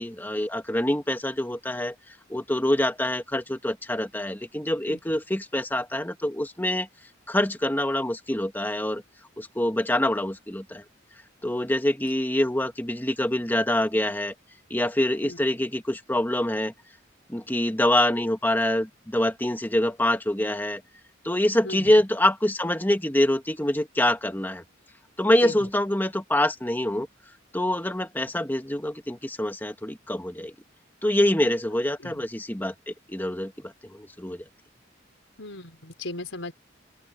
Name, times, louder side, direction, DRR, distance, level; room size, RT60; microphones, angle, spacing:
voice 1, 0.0-1.9 2.3-6.9 7.3-9.0 9.4-10.8 11.4-14.4 14.7-16.7 17.3-20.8 21.2-24.6 25.2-27.1 27.5-30.5 31.0-34.4, left 1 dB, 10° left, 1.9 m, -25 dB
voice 2, 25.2-25.7 32.0-32.2 35.4-36.5, left 2 dB, 85° left, 5.2 m, -37 dB
open air
head